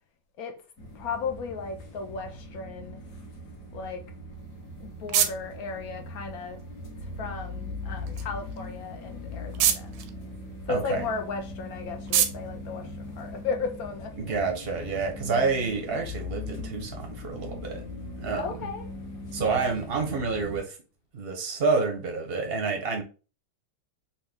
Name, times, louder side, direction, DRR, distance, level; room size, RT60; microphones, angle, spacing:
sound 1, 0.8-20.6, left 2 dB, 55° left, 1.3 m, -40 dB
voice 1, 0.9-3.0 3.7-4.1 4.8-6.6 7.0-9.9 10.7-14.3 18.4-18.9, left 5 dB, 70° left, 0.8 m, -35 dB
sound 2, 4.3-13.8, right 9 dB, 80° right, 1.2 m, -33 dB
voice 2, 10.7-11.1 14.2-17.8 18.2-18.5 19.3-20.8 21.1-23.0, right 4 dB, 55° right, 0.7 m, -28 dB
4.1 x 2.3 x 3.4 m
omnidirectional pair, 2.0 m